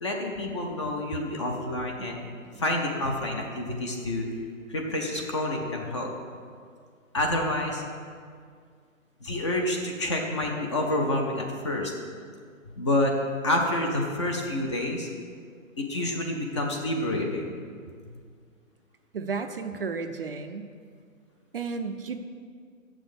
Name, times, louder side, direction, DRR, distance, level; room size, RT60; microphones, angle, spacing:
voice 1, 0.0-2.3 2.6-4.3 4.7-6.1 7.1-7.8 9.2-11.9 12.8-13.1 13.4-15.1 15.8-17.6, left 1 dB, 20° left, 1 dB, 0.6 m, -28 dB
voice 2, 19.1-20.7 21.5-22.2, right 5 dB, 45° right, 6 dB, 0.5 m, -33 dB
7.4 x 6.1 x 6.9 m, 2.1 s
hypercardioid pair, 155°, 41 cm